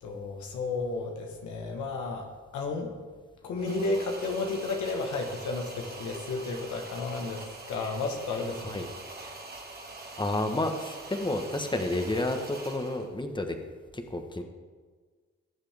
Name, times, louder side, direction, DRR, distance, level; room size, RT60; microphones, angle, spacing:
voice 1, 0.0-3.0 3.4-8.8 9.2-9.3, left 3 dB, 90° left, 2 dB, 1.5 m, -33 dB
sound 1, 3.6-13.1, right 2 dB, 35° right, 2.0 m, -44 dB
voice 2, 10.2-13.6 13.9-14.4, left 2 dB, 15° left, 5 dB, 1.4 m, -30 dB
18.0 x 7.4 x 3.6 m, 1.5 s
cardioid pair, 60°, 29 cm